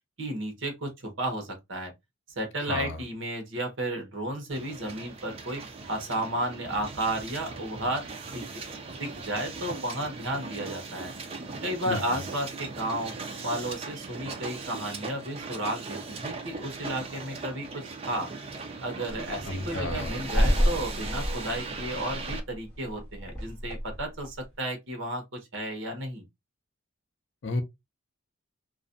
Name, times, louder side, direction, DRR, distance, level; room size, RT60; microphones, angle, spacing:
voice 1, 0.2-1.9 2.4-5.6 5.9-8.0 8.3-8.4 9.0-11.1 11.6-13.1 13.4-18.3 18.8-26.3, right 1 dB, 55° right, 0.8 m, -33 dB
Hiss, 4.5-22.4, right 4 dB, 25° right, 0.3 m, -39 dB
sound 1, 19.1-24.4, equal, 5° left, 1.0 m, -30 dB
voice 2, 19.5-20.1 27.4-27.6, left 2 dB, 55° left, 0.4 m, -31 dB
2.5 x 2.1 x 2.4 m
head